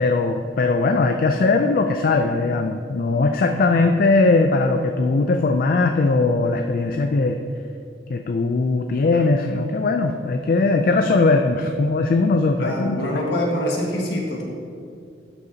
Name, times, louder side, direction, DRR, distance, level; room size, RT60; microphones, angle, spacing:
voice 1, 0.0-7.4 8.1-13.0, left 3 dB, 50° left, 5 dB, 0.4 m, -19 dB
voice 2, 12.6-14.4, left 1 dB, 70° left, -2 dB, 1.6 m, -25 dB
12.0 x 6.6 x 2.8 m, 2.4 s
head